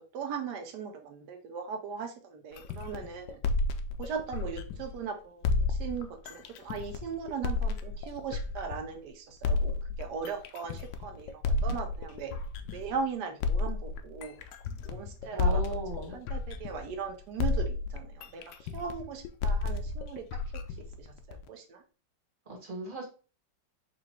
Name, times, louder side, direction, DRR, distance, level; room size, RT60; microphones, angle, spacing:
voice 1, 0.0-3.4 4.0-9.7 10.0-12.3 12.7-14.4 14.8-15.6 16.1-20.3 21.0-21.8, right 6 dB, 65° right, 4 dB, 1.3 m, -39 dB
sound 1, 2.6-5.0 5.4-9.0 9.4-13.0 13.4-17.1 17.4-21.5, left 3 dB, 75° left, 1.2 m, -32 dB
voice 2, 15.3-16.2 22.5-23.1, right 2 dB, 30° right, -1 dB, 1.4 m, -37 dB
4.0 x 2.6 x 4.4 m, 0.35 s
omnidirectional pair, 2.1 m